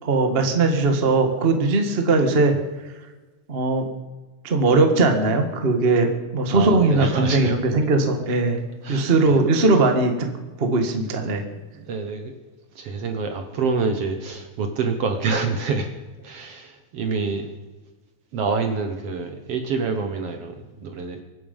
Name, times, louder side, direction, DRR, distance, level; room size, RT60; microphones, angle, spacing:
voice 1, 0.0-2.5 3.5-3.9 4.4-6.1 6.3-8.6 8.9-10.3 10.6-11.4, right 3 dB, 30° right, 5 dB, 1.2 m, -19 dB
voice 2, 6.5-7.6 8.8-9.4 11.0-11.1 11.6-12.3 12.8-15.9 16.2-17.5 18.3-21.2, right 4 dB, 60° right, 6 dB, 1.9 m, -27 dB
24.5 x 10.0 x 5.4 m, 1.2 s
omnidirectional pair, 3.7 m